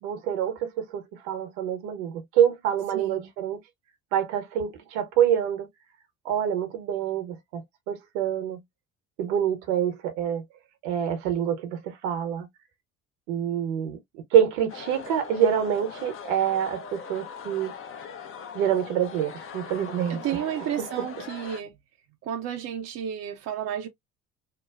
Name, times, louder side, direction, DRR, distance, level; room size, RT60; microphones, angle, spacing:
voice 1, 0.0-3.6 4.1-5.7 6.2-8.6 9.2-10.4 10.8-12.5 13.3-17.7 18.5-21.0, right 9 dB, 65° right, 0.9 m, -26 dB
voice 2, 2.9-3.3 20.1-21.7 22.2-23.9, right 10 dB, 40° right, 0.6 m, -32 dB
sound 1, 14.7-21.6, left 6 dB, 35° left, 0.6 m, -41 dB
2.9 x 2.2 x 2.3 m
figure-of-eight pair, 55°, 39 cm